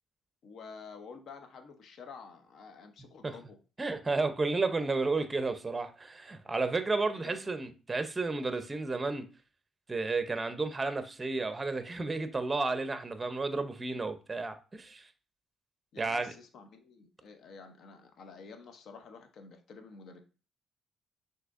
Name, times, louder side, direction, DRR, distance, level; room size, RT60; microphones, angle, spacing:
voice 1, 0.4-3.6 7.1-7.4 15.9-20.2, left 5 dB, 65° left, 0.7 m, -50 dB
voice 2, 3.8-9.3 9.9-15.1 16.0-16.3, right 3 dB, 25° right, 0.6 m, -32 dB
6.0 x 2.8 x 2.4 m
cardioid pair, 90°, 0 cm